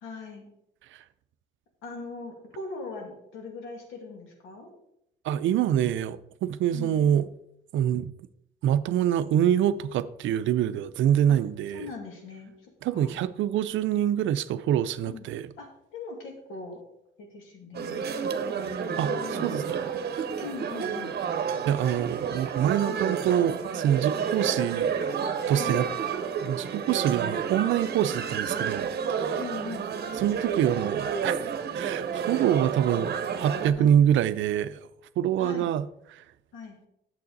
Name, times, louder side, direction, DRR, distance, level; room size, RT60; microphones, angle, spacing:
voice 1, 0.0-0.5 1.8-4.7 6.7-7.1 11.3-11.4 11.7-13.2 15.0-15.3 15.6-16.8 17.2-18.1 18.8-19.8 20.4-21.2 22.8-23.0 25.5-25.8 29.4-29.9 33.8-34.0 35.4-35.7 36.5-36.8, left 4 dB, 90° left, 2.3 m, -41 dB
voice 2, 5.2-7.3 7.7-8.1 8.6-11.9 12.8-15.5 19.0-19.8 21.7-24.9 25.5-25.9 26.4-28.9 29.2-29.4 30.2-34.8 35.2-35.9 36.1-36.2, right 10 dB, 75° right, 0.5 m, -25 dB
sound 1, 17.7-33.7, right 7 dB, 55° right, 0.9 m, -30 dB
8.5 x 7.3 x 4.0 m
cardioid pair, 90°, 20 cm